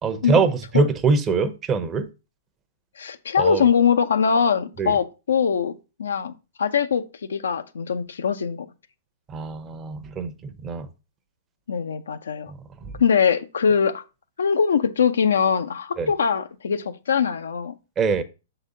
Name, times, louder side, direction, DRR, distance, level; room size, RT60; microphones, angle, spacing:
voice 1, 0.0-2.1 3.4-3.7 4.8-5.0 9.3-10.4 10.6-10.9 12.5-12.6 16.0-16.1 18.0-18.2, right 4 dB, 20° right, 0.7 m, -23 dB
voice 2, 3.0-5.7 6.0-6.3 6.6-7.0 7.3-8.7 11.7-12.5 13.0-14.0 14.4-17.7, left 6 dB, 80° left, 0.6 m, -22 dB
6.4 x 4.0 x 3.9 m
hypercardioid pair, 130°, 0 cm